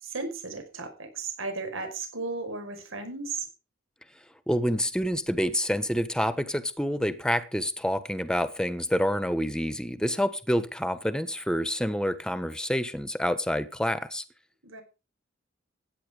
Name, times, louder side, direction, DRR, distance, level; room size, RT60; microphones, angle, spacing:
voice 1, 0.0-3.5 14.6-14.8, right 3 dB, 80° right, 5.3 m, -35 dB
voice 2, 4.5-14.2, equal, 5° left, 1.3 m, -27 dB
16.0 x 10.0 x 5.1 m
head